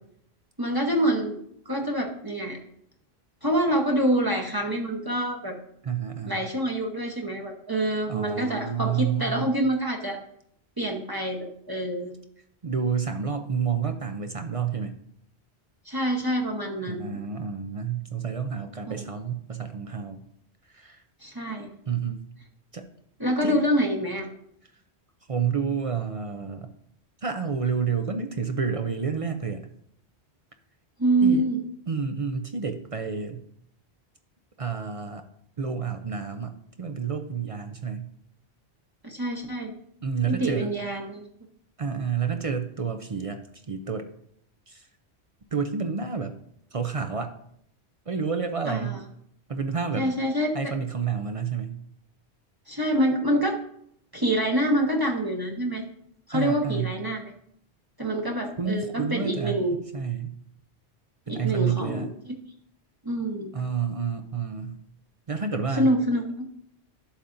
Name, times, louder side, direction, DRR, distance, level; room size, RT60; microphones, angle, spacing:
voice 1, 0.6-1.4 1.7-2.6 3.4-5.6 6.3-10.2 10.8-12.1 15.9-17.1 18.9-19.1 21.2-21.7 23.2-24.3 31.0-31.6 39.0-39.7 40.3-41.2 48.7-49.0 50.0-50.5 52.7-53.6 54.1-55.8 56.3-57.3 58.0-59.8 61.3-62.1 63.0-63.5 65.8-66.4, right 1 dB, 20° right, 0 dB, 0.9 m, -26 dB
voice 2, 5.8-6.4 8.1-9.5 12.6-14.9 16.9-20.2 20.7-21.0 21.9-22.2 22.7-22.8 23.4-23.6 25.3-26.7 27.2-29.6 31.2-31.5 31.9-33.4 34.6-35.2 35.6-38.1 40.0-40.7 41.8-43.4 43.7-44.1 44.7-44.9 45.5-46.3 46.7-47.3 48.1-49.0 49.5-50.1 50.5-51.8 56.3-56.9 58.6-59.6 59.9-60.3 61.3-62.1 63.5-64.8 65.3-65.9, right 6 dB, 45° right, 7 dB, 0.5 m, -29 dB
11.5 x 6.9 x 2.6 m, 0.70 s
omnidirectional pair, 1.1 m